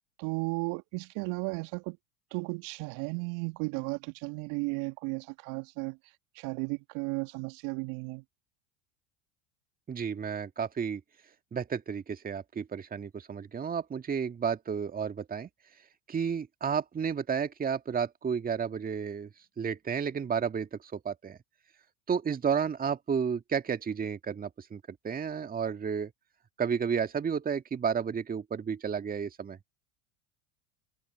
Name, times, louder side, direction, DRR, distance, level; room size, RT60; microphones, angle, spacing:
voice 1, 0.2-2.0 2.3-6.0 6.4-8.2, right 30 dB, 55° right, 1.9 m, -34 dB
voice 2, 9.9-11.0 11.5-15.5 16.1-19.3 19.6-21.4 22.1-26.1 26.6-29.6, right 7 dB, 20° right, 1.9 m, -32 dB
hypercardioid pair, 80°, 40 cm